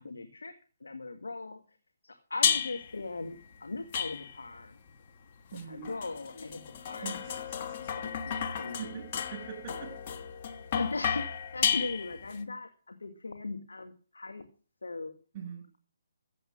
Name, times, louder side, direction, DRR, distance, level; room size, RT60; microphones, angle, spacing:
voice 1, 0.0-1.8 2.0-4.8 5.5-7.4 7.6-9.0 10.7-14.4 14.8-15.1, left 3 dB, 85° left, 6 dB, 1.7 m, -39 dB
sound 1, 2.4-3.0 3.9-4.6 5.6-12.4, left 7 dB, 40° left, 1.4 m, -33 dB
voice 2, 5.5-5.9 7.0-7.9 8.8-10.0 15.3-15.7, right 8 dB, 30° right, 4 dB, 7.5 m, -43 dB
14.5 x 7.9 x 6.4 m, 0.38 s
hypercardioid pair, 145°, 0 cm